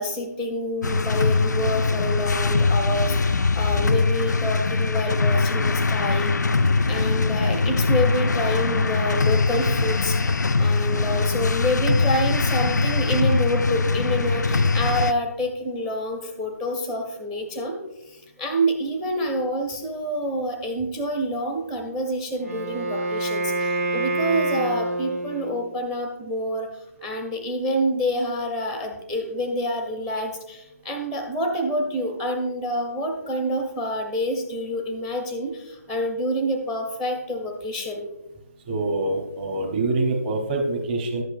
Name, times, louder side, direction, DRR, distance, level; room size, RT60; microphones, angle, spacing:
voice 1, 0.0-6.3 6.9-10.3 10.6-17.8 18.1-38.1, equal, 5° right, 3 dB, 0.6 m, -27 dB
sound 1, 0.8-15.1, left 3 dB, 90° left, 0.4 m, -22 dB
Wind instrument woodwind instrument, 22.4-25.7, right 2 dB, 65° right, 1.8 m, -26 dB
voice 2, 38.7-41.2, right 2 dB, 25° right, -1 dB, 1.0 m, -25 dB
11.5 x 8.0 x 2.5 m, 0.99 s
figure-of-eight pair, 155°, 9 cm